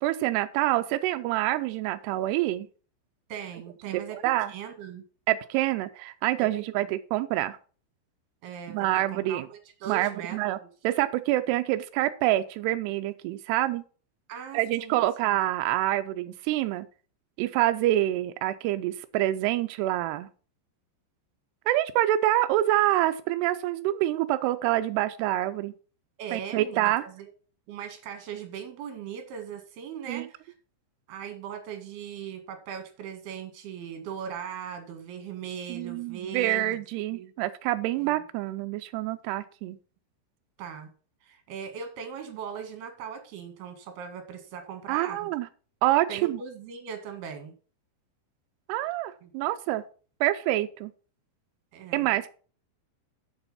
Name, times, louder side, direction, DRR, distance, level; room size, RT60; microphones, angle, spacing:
voice 1, 0.0-2.7 3.9-4.5 5.3-7.6 8.7-9.5 9.9-10.6 10.8-13.8 14.5-16.9 17.4-20.3 21.7-25.7 26.3-27.0 30.1-30.3 35.7-39.8 44.9-45.5 45.8-46.4 48.7-49.8 50.2-50.9 51.9-52.3, right 15 dB, 85° right, 9 dB, 2.4 m, -26 dB
voice 2, 3.3-4.2 4.5-5.0 6.4-6.6 8.4-10.7 14.3-15.1 26.2-27.3 27.7-30.5 31.1-36.8 37.1-37.3 38.0-38.2 40.6-40.9 41.2-45.3 46.1-47.6 49.2-49.3 51.7-52.1, right 7 dB, 65° right, 6 dB, 3.4 m, -39 dB
7.6 x 7.0 x 5.6 m, 0.39 s
omnidirectional pair, 5.3 m